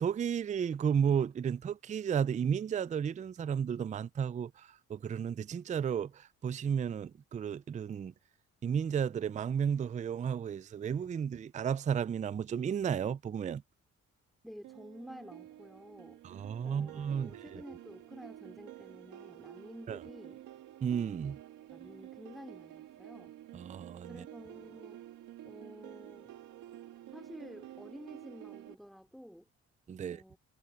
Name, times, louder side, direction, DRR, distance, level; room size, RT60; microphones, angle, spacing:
voice 1, 0.0-4.5 4.9-6.1 6.4-8.1 8.6-13.6 16.2-17.6 19.9-20.0 20.8-21.4 23.5-24.2 29.9-30.2, right 7 dB, 25° right, 0.4 m, -33 dB
voice 2, 14.4-16.2 16.6-20.4 21.2-21.3 21.7-23.4 24.1-25.1 25.4-26.3 27.1-29.5 30.0-30.4, equal, ahead, 4.2 m, -51 dB
sound 1, 14.6-28.7, right 13 dB, 85° right, 1.8 m, -50 dB
cardioid pair, 90°, 30 cm